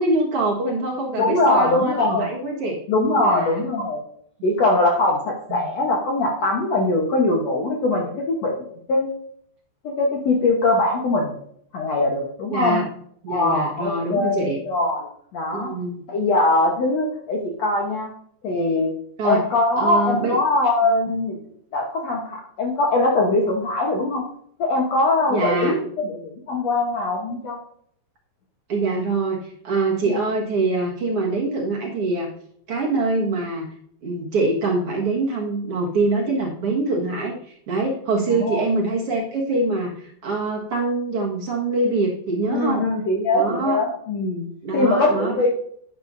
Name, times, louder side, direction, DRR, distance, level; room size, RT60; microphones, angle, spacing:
voice 1, 0.0-2.8 3.1-3.6 4.4-4.5 5.5-5.6 12.5-12.9 13.2-14.6 15.5-16.0 19.2-19.4 19.8-20.4 25.3-25.8 28.7-32.3 32.7-33.7 34.0-42.8 43.3-43.8 44.6-45.3, right 2 dB, 55° right, -2 dB, 1.7 m, -24 dB
voice 2, 1.2-2.2 2.9-4.0 4.4-8.6 8.9-9.1 9.8-11.4 11.7-12.8 13.3-15.1 15.3-15.7 16.1-18.1 18.4-18.9 19.2-21.4 21.7-24.2 24.6-27.6 30.0-30.2 38.3-38.6 42.5-44.5 44.7-45.5, left 2 dB, 90° left, 0 dB, 1.4 m, -21 dB
11.5 x 10.5 x 2.7 m, 0.65 s
omnidirectional pair, 5.0 m